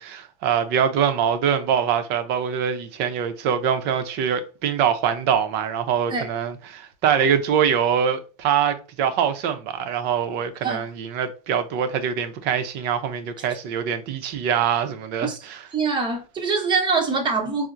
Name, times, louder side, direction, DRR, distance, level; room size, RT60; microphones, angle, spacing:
voice 1, 0.0-15.6, right 8 dB, 55° right, 0.6 m, -24 dB
voice 2, 15.2-17.7, right 4 dB, 20° right, 1.0 m, -24 dB
4.3 x 2.1 x 2.5 m
supercardioid pair, 125°, 21 cm